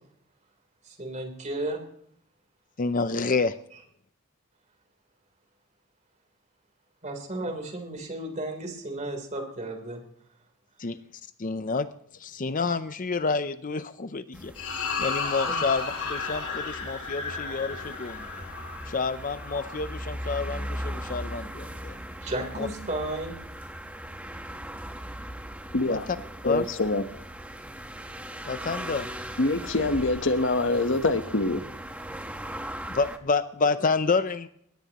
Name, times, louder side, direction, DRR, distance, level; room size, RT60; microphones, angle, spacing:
voice 1, 0.8-1.8 7.0-10.0 15.5-15.6 22.2-23.4, right 1 dB, 35° right, 4 dB, 3.5 m, -33 dB
voice 2, 2.8-3.6 10.8-11.0 11.4-11.9 12.1-14.5 15.0-18.4 18.9-22.0 22.6-22.7 25.9-26.0 26.4-26.7 28.5-29.1 32.9-34.5, left 4 dB, 40° left, 12 dB, 0.6 m, -28 dB
sound 1, 14.3-33.2, equal, 5° right, 1.1 m, -39 dB
sound 2, 14.5-21.1, left 4 dB, 85° left, 4.6 m, -34 dB
voice 3, 25.7-26.1 26.4-27.0 29.4-31.6, left 2 dB, 55° left, 9 dB, 1.1 m, -25 dB
22.0 x 18.5 x 3.0 m, 0.68 s
head